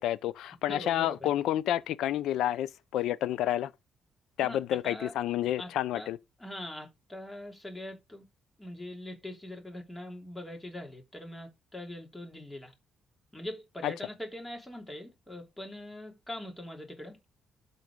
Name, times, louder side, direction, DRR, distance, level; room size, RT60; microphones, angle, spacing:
voice 1, 0.0-3.7 4.4-6.2 13.8-13.9, left 12 dB, 85° left, 0.6 m, -29 dB
voice 2, 0.7-1.2 4.4-4.6 4.8-5.1 5.6-5.7 5.9-6.1 6.4-8.2 8.6-12.7 13.3-17.2, left 1 dB, 10° left, 3.1 m, -42 dB
12.0 x 4.2 x 5.1 m
cardioid pair, 90°, 0 cm